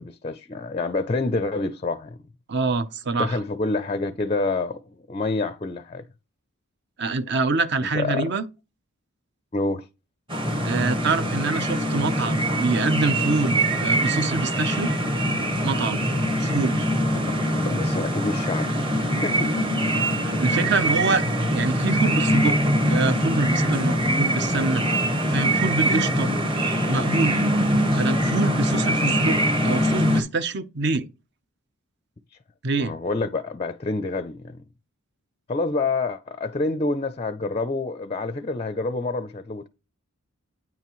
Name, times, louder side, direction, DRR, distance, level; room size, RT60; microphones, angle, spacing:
voice 1, 0.0-2.2 3.2-6.1 7.8-8.3 9.5-9.9 17.1-19.7 20.4-20.7 32.8-34.6 35.5-39.7, left 3 dB, 25° left, 0.4 m, -28 dB
voice 2, 2.5-3.4 7.0-8.4 10.6-14.9 15.6-16.0 16.4-16.9 20.2-22.6 22.9-24.9 25.3-26.3 26.9-27.4 28.0-29.4 29.6-31.1 32.6-32.9, right 3 dB, 50° right, 0.6 m, -25 dB
sound 1, 10.3-30.2, equal, 25° right, 1.1 m, -23 dB
9.1 x 5.7 x 3.0 m
head